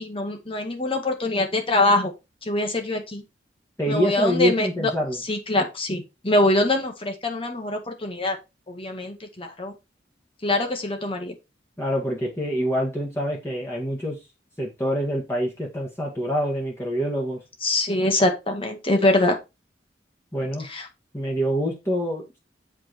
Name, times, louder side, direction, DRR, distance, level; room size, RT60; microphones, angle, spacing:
voice 1, 0.0-2.1 2.4-3.2 3.9-4.9 5.2-8.4 8.7-9.7 10.4-11.4 17.6-19.4 20.6-20.9, left 2 dB, 30° left, 4 dB, 1.9 m, -24 dB
voice 2, 3.8-5.2 11.8-14.2 14.6-17.4 20.3-20.7 21.1-22.4, equal, 15° left, -2 dB, 2.0 m, -26 dB
7.7 x 4.8 x 4.6 m, 0.25 s
head